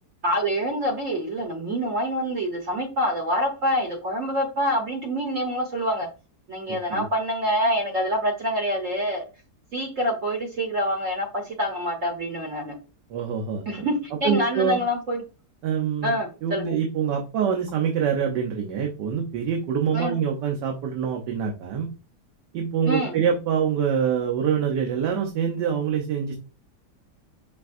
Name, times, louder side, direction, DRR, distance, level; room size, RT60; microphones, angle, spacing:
voice 1, 0.2-6.1 6.5-9.2 9.7-12.7 13.7-15.2 16.0-16.7 19.9-20.2 22.9-23.1, equal, 55° right, 1 dB, 1.1 m, -26 dB
voice 2, 13.1-13.6 14.2-14.8 15.6-16.1 16.4-21.9 22.5-26.4, right 7 dB, 85° right, 1 dB, 1.4 m, -25 dB
5.9 x 3.3 x 2.5 m, 0.32 s
omnidirectional pair, 1.8 m